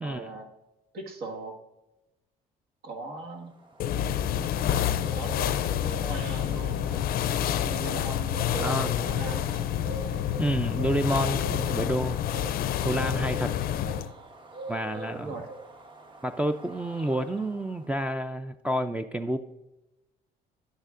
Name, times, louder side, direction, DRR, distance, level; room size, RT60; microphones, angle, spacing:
voice 1, 0.0-0.5 0.9-1.6 2.8-3.5 4.8-7.0 7.6-9.6 14.9-15.5, right 3 dB, 65° right, 2 dB, 1.6 m, -39 dB
sound 1, 3.4-18.0, right 2 dB, 30° right, 1.1 m, -44 dB
sound 2, 3.8-14.1, left 11 dB, 60° left, 0.4 m, -28 dB
voice 2, 8.6-9.1 10.4-12.2 12.8-13.5 14.7-15.3 16.2-19.4, right 1 dB, 5° right, 4 dB, 0.4 m, -29 dB
10.0 x 9.1 x 2.5 m, 0.97 s
cardioid pair, 110°, 17 cm